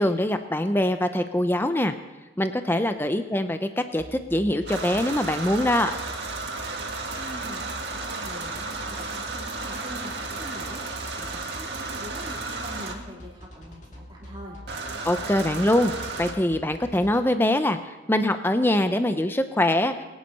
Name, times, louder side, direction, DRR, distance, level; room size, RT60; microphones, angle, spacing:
voice 1, 0.0-1.9 2.4-5.9 15.0-15.9 16.2-17.8 18.1-19.9, left 1 dB, 10° left, 8 dB, 0.6 m, -23 dB
sound 1, 4.0-17.2, equal, 40° left, 2.1 m, -43 dB
sound 2, 4.7-12.9 14.7-16.3, right 3 dB, 60° right, 2.0 m, -33 dB
voice 2, 7.1-7.6 7.9-10.8 11.1-14.6, equal, 25° right, -4 dB, 3.4 m, -43 dB
22.0 x 9.5 x 5.5 m, 1.1 s
head